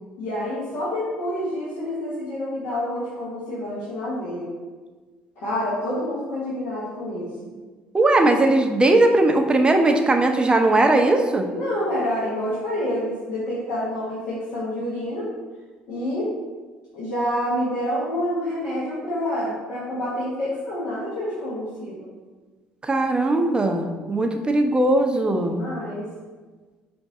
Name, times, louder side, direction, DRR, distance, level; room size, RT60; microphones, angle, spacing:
voice 1, 0.2-4.5 5.4-7.5 11.5-15.3 15.9-16.3 16.9-22.1 25.3-26.1, left 1 dB, 65° left, -8 dB, 1.2 m, -28 dB
voice 2, 7.9-11.5 22.8-25.6, right 2 dB, 20° right, 4 dB, 0.6 m, -19 dB
5.2 x 2.6 x 3.6 m, 1.4 s
hypercardioid pair, 60°, 4 cm